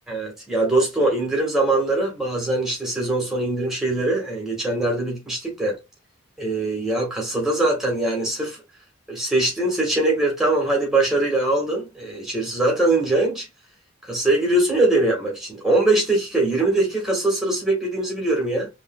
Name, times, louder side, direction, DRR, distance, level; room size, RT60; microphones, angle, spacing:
voice 1, 0.1-5.7 6.4-8.6 9.1-13.5 14.1-18.7, right 2 dB, ahead, 1.5 m, -22 dB
5.2 x 3.1 x 2.2 m
head